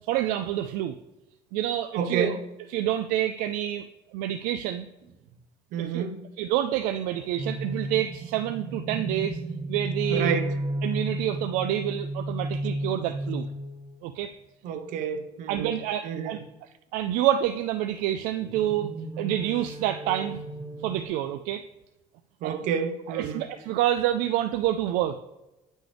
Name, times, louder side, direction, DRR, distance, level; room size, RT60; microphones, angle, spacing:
voice 1, 0.1-1.0 1.5-2.3 2.7-3.8 4.1-4.9 5.8-6.1 6.4-9.4 9.7-10.3 10.8-13.5 14.0-14.3 15.5-16.4 16.9-20.4 20.8-21.6 22.4-22.5 23.1-25.2, right 12 dB, 85° right, 0.4 m, -28 dB
voice 2, 1.9-2.4 5.7-6.3 10.1-10.5 14.6-15.8 16.0-16.4 22.4-23.5, right 7 dB, 70° right, 0.9 m, -29 dB
sound 1, 7.4-14.0 18.2-21.1, right 1 dB, 45° right, 1.3 m, -33 dB
9.7 x 6.2 x 3.4 m
cardioid pair, 130°, 14 cm